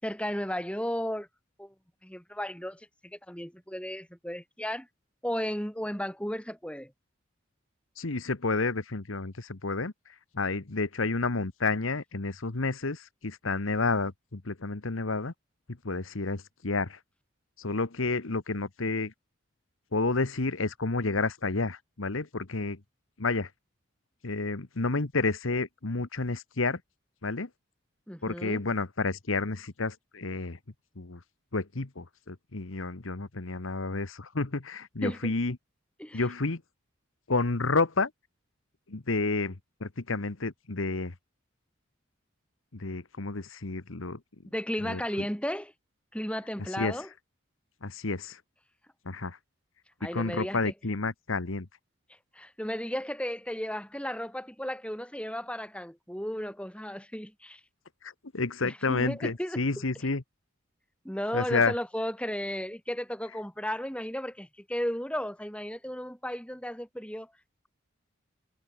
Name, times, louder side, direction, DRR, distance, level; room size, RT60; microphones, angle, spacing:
voice 1, 0.0-1.3 1.6-1.7 2.0-4.9 5.2-6.9 28.1-28.6 35.0-35.3 36.0-36.3 44.5-45.7 46.1-47.1 50.0-50.7 52.3-57.6 58.6-59.6 61.0-67.3, equal, 5° left, 7.7 m, -34 dB
voice 2, 8.0-9.9 10.3-15.3 15.8-17.0 17.6-19.1 19.9-22.8 23.2-23.5 24.2-26.8 27.2-27.5 28.2-30.6 31.0-31.2 31.5-35.6 36.1-36.6 37.3-38.1 38.9-41.1 42.7-44.2 44.8-45.0 46.8-47.0 47.8-48.4 49.0-49.4 50.1-51.7 58.0-60.2 61.3-61.7, left 3 dB, 80° left, 1.3 m, -30 dB
head